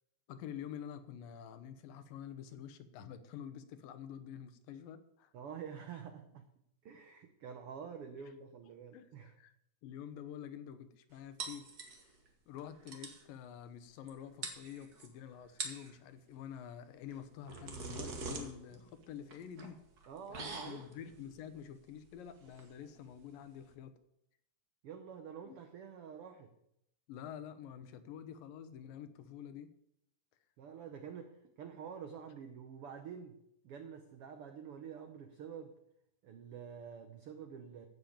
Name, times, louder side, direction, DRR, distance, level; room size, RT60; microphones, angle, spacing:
voice 1, 0.3-5.3 8.9-9.5 9.8-12.2 12.5-19.8 20.3-23.9 25.5-25.6 27.1-29.7, left 9 dB, 90° left, 11 dB, 2.7 m, -48 dB
voice 2, 5.3-6.5 6.8-9.3 20.1-20.8 24.8-26.5 30.6-33.4 33.6-35.8 36.2-37.9, right 7 dB, 80° right, 6 dB, 1.2 m, -48 dB
sound 1, 11.4-12.3 12.6-12.7 12.9-13.2 14.1-14.2 14.4-15.1 15.5-15.9 17.1-23.7, right 4 dB, 45° right, 1.2 m, -45 dB
14.0 x 5.3 x 8.6 m, 0.77 s
omnidirectional pair, 3.9 m